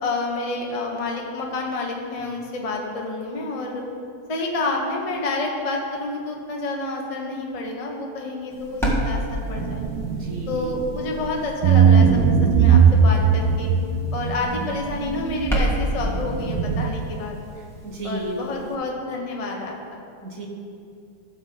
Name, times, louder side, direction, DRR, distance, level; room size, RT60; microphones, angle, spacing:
voice 1, 0.0-3.8 4.3-9.8 10.5-12.2 12.6-13.7 14.1-17.4 18.0-20.0, left 2 dB, 25° left, 0 dB, 0.9 m, -29 dB
sound 1, 8.5-18.7, equal, ahead, 1.5 m, -31 dB
sound 2, 9.6-11.2 11.6-16.9, right 6 dB, 90° right, 1.2 m, -19 dB
voice 2, 10.1-10.7 15.9-16.1 17.8-18.5 20.2-20.5, right 2 dB, 55° right, 0 dB, 1.6 m, -33 dB
13.5 x 6.9 x 3.8 m, 2.5 s
omnidirectional pair, 1.7 m